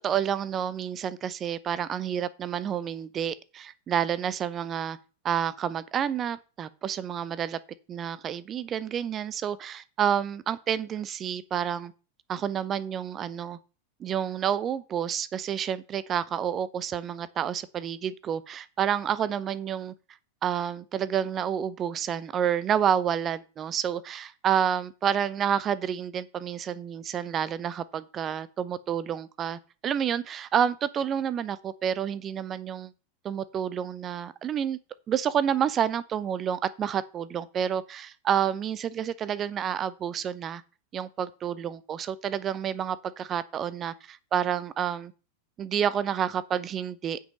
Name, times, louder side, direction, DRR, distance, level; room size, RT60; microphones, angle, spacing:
voice 1, 0.0-5.0 5.2-7.6 7.9-11.9 12.3-13.6 14.0-19.9 20.4-32.9 33.2-34.8 35.1-40.6 40.9-45.1 45.6-47.2, right 9 dB, 25° right, 0.6 m, -29 dB
9.0 x 5.1 x 5.3 m
figure-of-eight pair, 90°, 0 cm